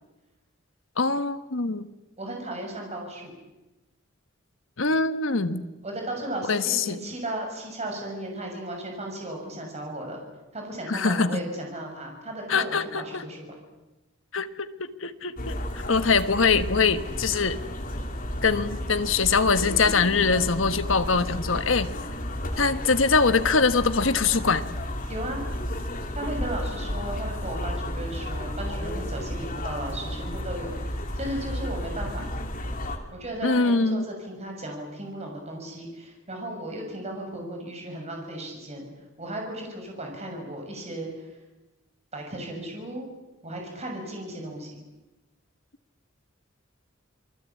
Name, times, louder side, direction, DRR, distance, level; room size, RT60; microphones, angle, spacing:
voice 1, 1.0-1.9 4.8-5.6 6.5-7.0 10.9-11.4 12.5-13.2 14.3-17.6 18.4-21.9 22.6-24.7 33.4-34.0, left 4 dB, 70° left, 11 dB, 1.4 m, -23 dB
voice 2, 2.2-3.3 5.8-10.2 10.5-13.4 25.1-25.4 26.1-32.3 33.1-38.9 39.2-41.3 42.1-43.1 43.4-44.8, right 1 dB, 35° right, 2 dB, 6.5 m, -35 dB
sound 1, 15.4-33.0, left 1 dB, 45° left, 3.0 m, -32 dB
27.5 x 20.5 x 8.5 m, 1.1 s
head